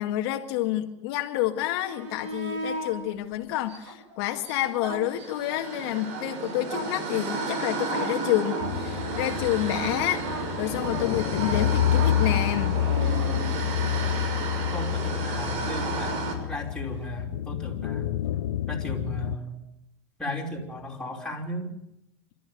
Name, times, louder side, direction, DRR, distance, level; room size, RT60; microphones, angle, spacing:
voice 1, 0.0-13.2, left 13 dB, 60° left, 4 dB, 2.0 m, -29 dB
sound 1, 1.7-2.9 3.6-5.6 5.9-14.2 16.9-17.0, right 2 dB, 85° right, 7.6 m, -37 dB
sound 2, 5.1-16.3, right 4 dB, 50° right, 6.4 m, -32 dB
sound 3, 8.6-19.4, left 12 dB, 85° left, 0.9 m, -28 dB
voice 2, 13.6-14.1 14.7-18.2 18.7-19.6 20.2-21.7, equal, 5° left, -1 dB, 5.4 m, -36 dB
27.0 x 13.5 x 9.3 m, 0.83 s
supercardioid pair, 130°, 15 cm